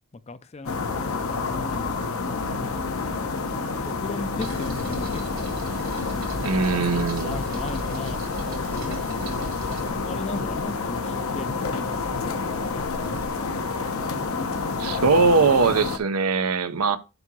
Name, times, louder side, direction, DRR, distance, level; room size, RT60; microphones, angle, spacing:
voice 1, 0.1-1.9 2.2-2.4 3.8-5.5 7.2-8.2 10.0-12.8, left 3 dB, 30° left, 0.4 m, -37 dB
sound 1, 0.6-16.0, left 4 dB, 75° left, 0.9 m, -28 dB
sound 2, 4.4-9.9, right 1 dB, 60° right, 1.4 m, -37 dB
voice 2, 6.4-7.4 14.8-17.0, right 4 dB, 90° right, 0.7 m, -21 dB
7.8 x 2.8 x 6.0 m
head